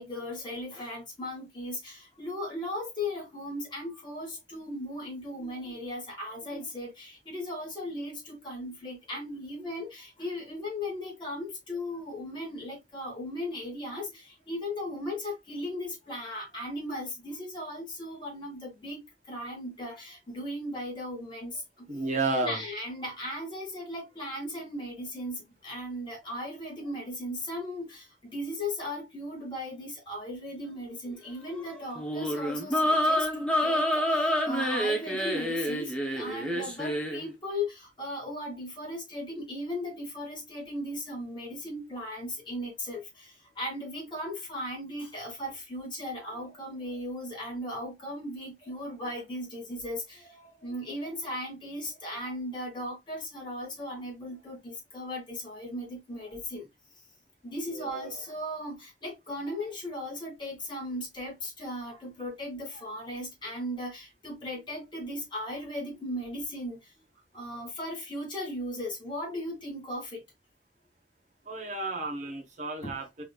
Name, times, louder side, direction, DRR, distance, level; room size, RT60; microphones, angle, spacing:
voice 1, 0.0-19.0 19.2-21.9 22.4-56.7 57.4-66.9 67.3-70.2 72.8-73.0, left 1 dB, 25° left, 2.5 m, -37 dB
voice 2, 21.9-22.6 36.6-36.7 57.7-58.2 71.4-73.2, right 2 dB, 45° right, 1.2 m, -32 dB
sound 1, 32.0-37.2, equal, 5° left, 0.8 m, -28 dB
5.0 x 3.0 x 2.3 m
head